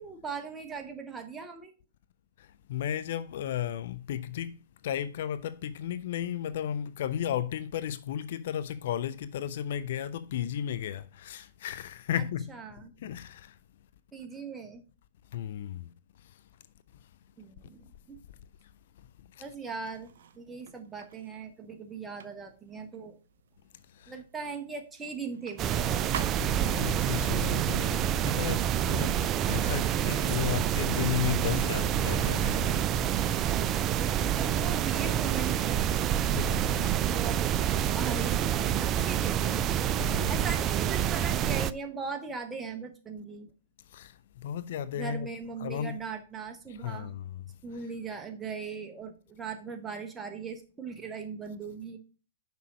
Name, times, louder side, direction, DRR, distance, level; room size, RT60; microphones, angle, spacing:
voice 1, 0.0-1.7 12.5-12.9 14.1-14.8 17.4-18.2 19.4-23.2 24.1-26.0 29.4-29.8 33.3-39.4 40.3-43.5 44.9-47.1 47.6-52.0, right 5 dB, 10° right, 1.2 m, -39 dB
voice 2, 2.4-13.6 15.3-16.5 16.9-17.1 18.6-19.4 23.9-24.2 26.4-32.9 36.3-36.8 39.9-40.3 43.9-45.3 45.6-46.0 46.7-47.6, left 10 dB, 55° left, 0.4 m, -35 dB
sound 1, 19.8-26.9, right 7 dB, 60° right, 0.7 m, -47 dB
sound 2, 25.6-41.7, right 10 dB, 30° right, 0.4 m, -27 dB
6.2 x 5.3 x 5.0 m
figure-of-eight pair, 115°, 0 cm